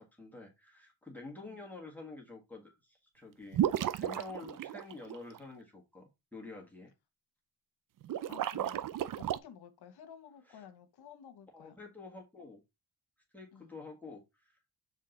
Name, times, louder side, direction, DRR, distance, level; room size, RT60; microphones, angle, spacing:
voice 1, 0.0-6.9 10.5-10.6 11.5-12.6 13.3-14.8, left 3 dB, 5° left, 1.6 m, -49 dB
sound 1, 3.5-5.4 8.0-9.4, right 11 dB, 55° right, 0.5 m, -33 dB
voice 2, 8.3-8.8 9.2-11.8 13.5-13.7, left 8 dB, 75° left, 1.2 m, -53 dB
6.4 x 3.7 x 3.9 m
cardioid pair, 110°, 39 cm